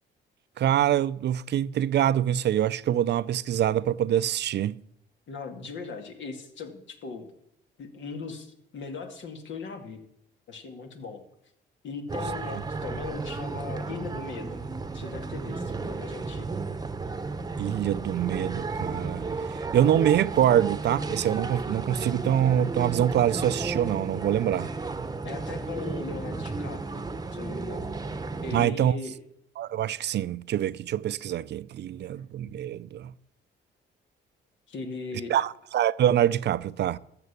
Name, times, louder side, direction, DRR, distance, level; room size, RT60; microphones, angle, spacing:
voice 1, 0.6-4.8 17.6-24.7 28.5-29.0 29.6-33.1 35.3-37.0, right 11 dB, 60° right, 0.5 m, -25 dB
voice 2, 5.3-7.3 7.8-10.0 10.5-11.2 11.8-14.6 14.9-16.5 25.2-27.1 27.3-27.9 28.4-29.2 34.7-35.4, left 4 dB, 70° left, 2.3 m, -38 dB
sound 1, 12.1-28.7, right 3 dB, 20° right, 0.9 m, -33 dB
14.0 x 6.9 x 8.2 m
cardioid pair, 90°, 20 cm